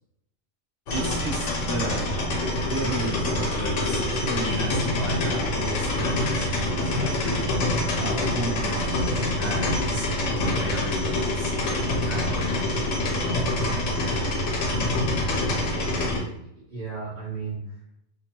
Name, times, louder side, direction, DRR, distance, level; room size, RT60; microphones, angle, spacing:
sound 1, 0.9-16.2, left 1 dB, 70° left, 1.0 m, -26 dB
voice 1, 0.9-7.3 7.6-12.3 13.1-14.3, right 1 dB, 10° right, -8 dB, 1.0 m, -34 dB
voice 2, 6.7-7.2 15.3-16.4 16.7-17.6, right 1 dB, 40° right, -8 dB, 0.7 m, -35 dB
2.9 x 2.3 x 2.8 m, 0.76 s
omnidirectional pair, 1.4 m